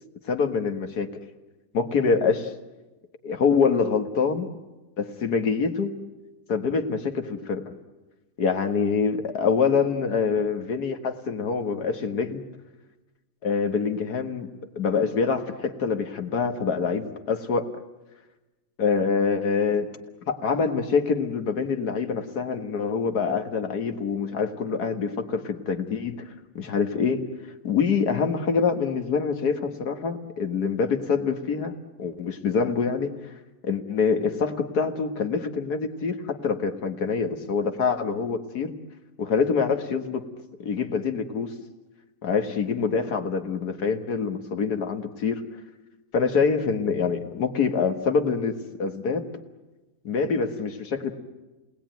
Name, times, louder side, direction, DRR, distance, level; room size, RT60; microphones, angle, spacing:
voice 1, 0.3-1.1 1.7-2.5 3.2-4.5 5.0-6.0 6.5-7.7 8.4-12.4 13.4-14.5 14.8-17.7 18.8-19.9 20.3-26.2 26.6-27.2 27.6-33.1 33.6-38.7 39.2-40.3 40.6-41.5 42.2-45.4 46.1-49.3 50.0-51.1, left 5 dB, 80° left, 6 dB, 2.1 m, -25 dB
29.5 x 20.0 x 9.1 m, 1.2 s
omnidirectional pair, 1.7 m